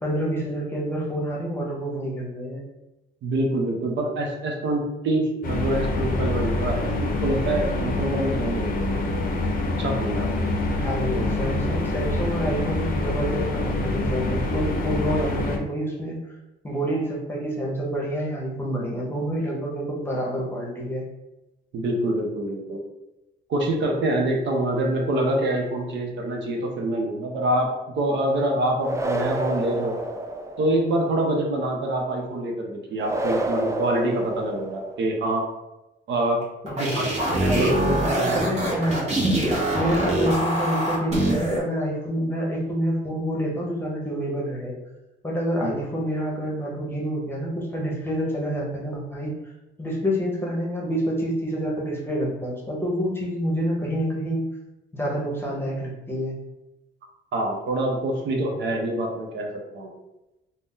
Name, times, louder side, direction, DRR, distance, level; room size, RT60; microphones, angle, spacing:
voice 1, 0.0-2.6 10.7-16.2 16.6-21.0 36.6-37.1 37.4-39.4 39.7-44.7 45.2-49.3 49.8-54.5 54.9-56.4, equal, 10° left, -3 dB, 0.9 m, -27 dB
voice 2, 3.2-9.0 9.8-10.4 11.1-11.3 21.7-22.8 23.5-30.0 30.6-35.4 36.1-36.4 36.7-37.1 37.4-38.7 45.6-45.7 57.3-59.5 59.7-59.9, right 1 dB, 65° right, 1 dB, 0.6 m, -25 dB
sound 1, 5.4-15.6, left 2 dB, 45° left, 0.6 m, -26 dB
sound 2, 28.8-30.9 33.0-35.1, right 1 dB, 15° right, 0.3 m, -29 dB
sound 3, 36.4-41.6, right 1 dB, 35° right, 0.9 m, -24 dB
2.6 x 2.1 x 3.6 m, 0.96 s
cardioid pair, 90°, 20 cm